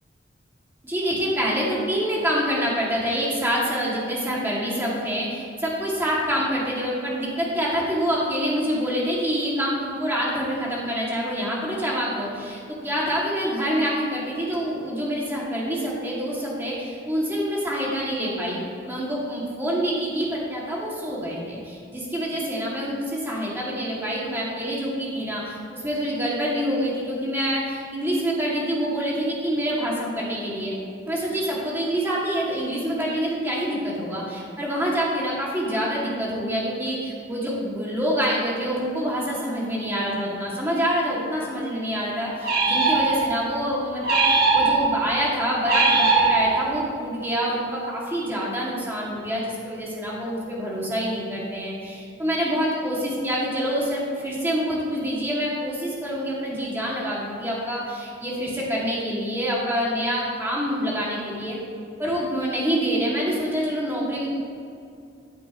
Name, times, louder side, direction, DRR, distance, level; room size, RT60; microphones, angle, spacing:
voice 1, 0.8-18.6 18.9-30.7 31.1-61.6 62.0-64.3, equal, 10° right, -5 dB, 2.2 m, -26 dB
sound 1, 42.4-43.5 44.0-45.1 45.6-46.8, right 3 dB, 55° right, 2.1 m, -20 dB
14.5 x 8.2 x 3.0 m, 2.5 s
head